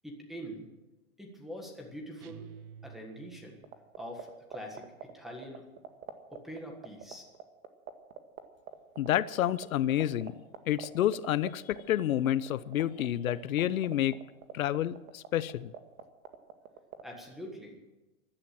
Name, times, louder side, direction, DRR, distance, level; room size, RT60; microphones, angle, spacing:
voice 1, 0.0-0.7 1.2-2.5 2.8-3.6 4.0-4.9 5.1-5.6 6.3-7.2 17.0-17.7, equal, ahead, 1 dB, 1.5 m, -44 dB
sound 1, 2.2-3.9, right 8 dB, 90° right, 1.2 m, -50 dB
sound 2, 3.6-17.0, right 11 dB, 70° right, 2.0 m, -42 dB
voice 2, 9.0-10.4 10.7-14.2 14.5-15.7, left 12 dB, 70° left, 17 dB, 0.9 m, -29 dB
15.0 x 11.5 x 7.7 m, 1.1 s
supercardioid pair, 170°, 43 cm